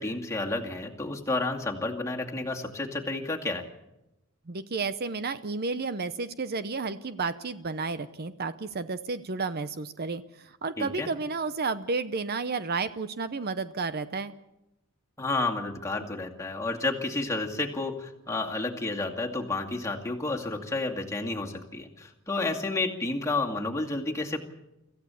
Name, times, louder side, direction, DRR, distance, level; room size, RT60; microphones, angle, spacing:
voice 1, 0.0-3.6 10.8-11.1 15.2-24.4, left 2 dB, 15° left, 1 dB, 2.3 m, -31 dB
voice 2, 4.5-14.3, right 4 dB, 45° right, 13 dB, 0.7 m, -32 dB
25.5 x 15.0 x 7.0 m, 0.91 s
head